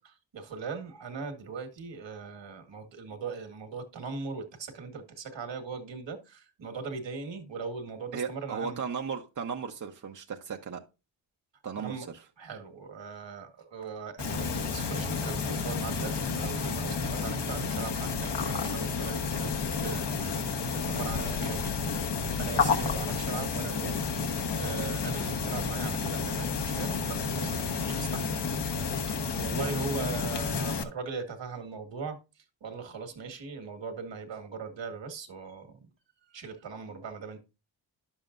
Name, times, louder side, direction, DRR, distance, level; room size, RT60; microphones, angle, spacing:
voice 1, 0.0-8.8 11.8-12.1 12.4-19.6 19.8-24.0 24.6-28.5 29.1-29.2 29.4-35.9 36.3-37.4, right 5 dB, 65° right, 2.0 m, -40 dB
voice 2, 8.1-10.8 11.6-12.2 14.7-14.8, right 6 dB, 40° right, 1.0 m, -36 dB
sound 1, 14.2-30.8, left 5 dB, 60° left, 1.3 m, -31 dB
10.5 x 7.4 x 2.6 m
cardioid pair, 55°, 47 cm